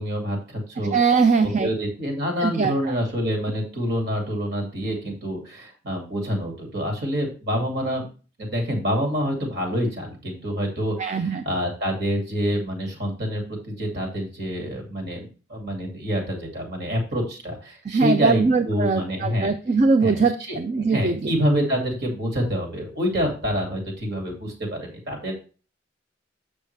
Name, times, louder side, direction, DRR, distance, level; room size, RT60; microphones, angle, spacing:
voice 1, 0.0-1.0 1.4-8.1 8.4-19.5 20.0-20.6 20.9-25.3, equal, 55° right, 1 dB, 2.4 m, -27 dB
voice 2, 0.9-1.7 2.4-2.9 11.0-11.4 17.9-21.3, right 4 dB, 35° right, 8 dB, 0.4 m, -21 dB
7.3 x 6.3 x 3.3 m, 0.36 s
head